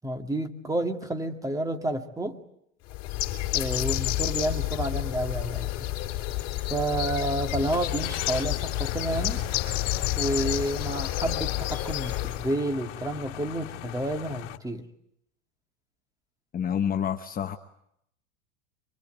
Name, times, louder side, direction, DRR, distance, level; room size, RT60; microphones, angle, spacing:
voice 1, 0.0-2.4 3.5-5.9 6.7-9.4 10.2-14.8, right 1 dB, 10° right, 7 dB, 2.0 m, -30 dB
Bird, 2.9-12.5, left 15 dB, 45° left, 3.7 m, -30 dB
sound 1, 5.1-5.2 7.7-14.6, left 14 dB, 75° left, 1.7 m, -39 dB
voice 2, 16.5-17.6, left 8 dB, 25° left, 6 dB, 1.0 m, -28 dB
24.5 x 23.5 x 9.2 m, 0.74 s
supercardioid pair, 130°, 36 cm